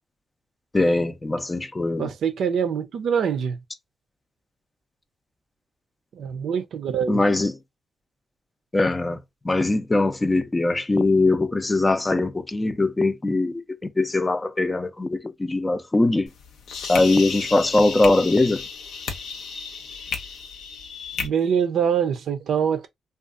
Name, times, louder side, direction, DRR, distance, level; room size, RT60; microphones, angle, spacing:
voice 1, 0.7-2.1 7.1-7.6 8.7-9.2 9.4-16.3 16.9-18.6, left 2 dB, 25° left, 0.5 m, -21 dB
voice 2, 2.0-3.6 6.2-7.2 21.2-22.9, right 7 dB, 75° right, 0.5 m, -24 dB
sound 1, 16.3-21.3, left 5 dB, 80° left, 0.5 m, -33 dB
2.6 x 2.3 x 2.4 m
supercardioid pair, 60°, 0 cm